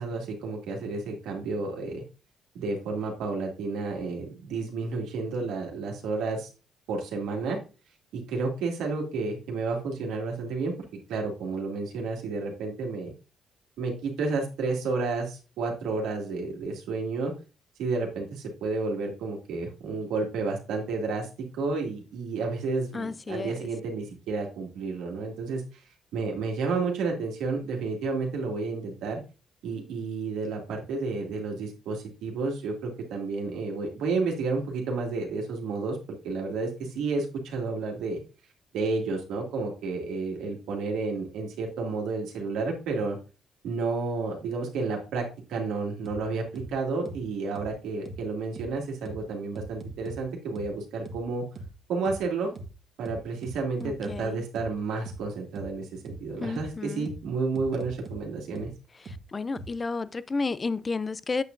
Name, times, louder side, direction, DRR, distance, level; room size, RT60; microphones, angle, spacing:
voice 1, 0.0-2.0 2.5-6.5 6.9-7.6 8.1-10.7 11.1-13.1 13.8-17.3 17.8-21.3 21.5-25.8 26.1-29.2 29.6-36.0 36.2-38.2 38.7-43.2 43.6-45.2 45.5-51.4 51.9-52.5 53.0-58.7, right 4 dB, 90° right, 2.4 m, -31 dB
voice 2, 22.9-23.5 53.8-54.3 56.4-57.1 59.3-61.4, left 4 dB, 30° left, 0.5 m, -31 dB
sound 1, 46.0-46.2 46.5-46.7 47.0-47.2 47.5-47.7 48.0-48.2 48.5-48.7 49.0-49.2 49.5-50.2 50.5-50.7 51.0-51.2 51.5-51.7 52.0-52.2 52.5-52.7 53.0-54.2 54.5-54.7 55.0-55.2 55.5-55.7 56.0-56.2 56.5-56.7 57.0-57.2 57.5-58.2 58.5-58.7 59.0-59.2 59.5-59.7, right 2 dB, 50° right, 1.6 m, -40 dB
8.4 x 7.2 x 2.7 m
cardioid pair, 90°, 0 cm